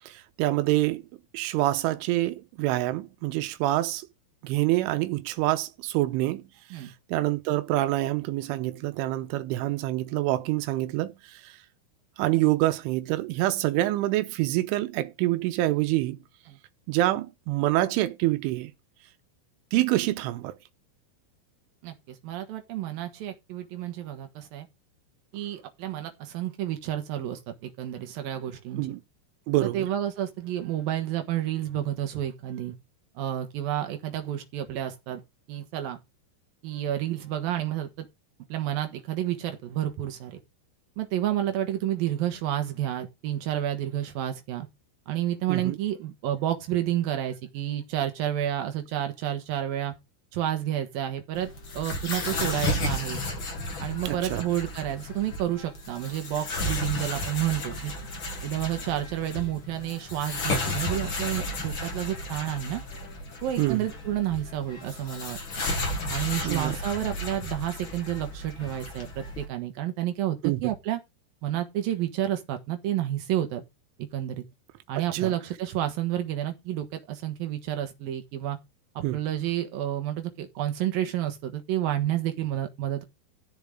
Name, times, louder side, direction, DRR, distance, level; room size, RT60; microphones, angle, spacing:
voice 1, 0.1-1.0 1.3-4.1 4.4-6.4 7.1-11.5 12.2-16.2 16.9-18.7 19.7-20.5 28.8-29.0 29.5-29.9 45.5-45.8 54.1-54.5 63.6-63.9 66.4-66.8 70.4-70.6 75.1-75.3 79.0-79.2, right 16 dB, 85° right, 3.3 m, -26 dB
voice 2, 21.8-24.7 25.3-29.0 29.6-32.7 33.2-35.2 35.5-36.0 36.6-38.1 38.5-40.4 41.0-44.7 45.1-50.0 50.3-53.2 53.8-57.9 58.4-62.8 63.4-65.4 66.1-71.0 71.4-73.6 74.0-74.5 74.9-78.6 79.1-83.0, right 12 dB, 70° right, 2.4 m, -30 dB
sound 1, 51.3-69.4, left 1 dB, 45° left, 1.6 m, -33 dB
14.0 x 7.1 x 3.7 m
omnidirectional pair, 5.6 m